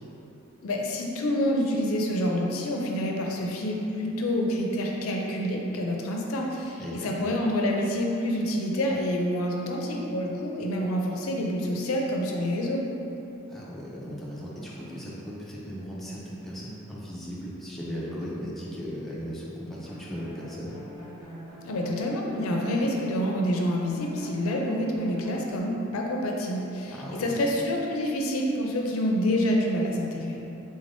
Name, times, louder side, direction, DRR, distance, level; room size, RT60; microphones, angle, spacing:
voice 1, 0.6-12.8 21.6-30.4, equal, 80° left, 0 dB, 0.4 m, -27 dB
voice 2, 6.8-7.3 13.5-20.7 26.9-27.5, equal, ahead, -7 dB, 0.5 m, -37 dB
sound 1, 19.8-23.5 23.9-25.6, equal, 20° right, 1.3 m, -45 dB
3.7 x 3.3 x 2.6 m, 2.9 s
head